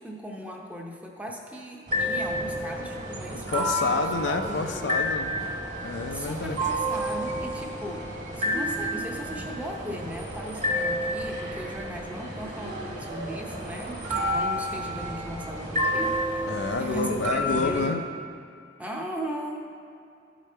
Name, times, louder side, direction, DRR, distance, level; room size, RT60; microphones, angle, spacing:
voice 1, 0.0-5.1 6.1-8.1 8.3-18.0 18.8-19.6, equal, 5° right, 0 dB, 0.7 m, -37 dB
sound 1, 1.9-17.9, equal, 40° right, 1.5 m, -30 dB
voice 2, 3.5-5.5 5.7-6.6 16.5-18.0, left 3 dB, 65° left, 6 dB, 0.5 m, -29 dB
12.5 x 5.0 x 4.3 m, 2.4 s
head